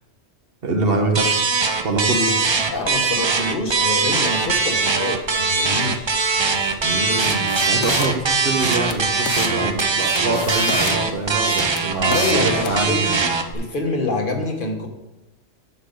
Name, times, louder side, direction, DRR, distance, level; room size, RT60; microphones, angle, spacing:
voice 1, 0.6-1.6 1.8-2.4 6.8-13.2, right 2 dB, 60° right, 3 dB, 1.3 m, -24 dB
sound 1, 1.1-13.5, right 4 dB, 35° right, 0.5 m, -21 dB
voice 2, 2.7-6.1 6.9-7.0 9.3-9.9 11.8-13.3 13.5-14.9, left 2 dB, 50° left, 3 dB, 1.2 m, -26 dB
sound 2, 7.1-8.1 8.5-9.5 9.8-11.0 11.4-12.8, left 7 dB, 80° left, 0.9 m, -31 dB
9.2 x 6.5 x 3.8 m, 0.96 s
omnidirectional pair, 1.1 m